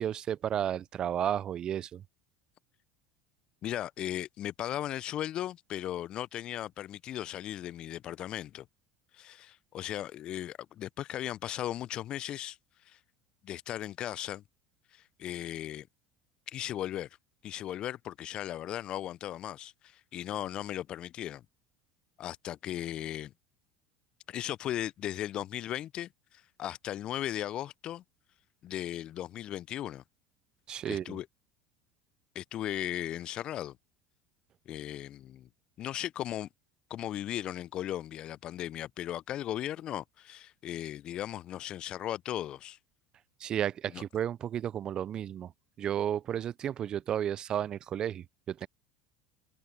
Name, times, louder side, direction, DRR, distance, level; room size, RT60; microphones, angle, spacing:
voice 1, 0.0-2.0 30.7-31.2 43.4-45.5 45.8-48.7, right 10 dB, 40° right, 0.5 m, -33 dB
voice 2, 3.6-8.7 9.1-12.6 12.9-13.0 13.4-14.4 14.9-15.9 16.5-17.1 17.4-21.4 22.2-23.3 24.3-28.0 28.6-30.0 30.9-31.3 32.3-33.8 34.7-35.5 35.8-36.5 36.9-42.8 43.9-44.0, left 12 dB, 45° left, 0.7 m, -37 dB
hypercardioid pair, 70°, 2 cm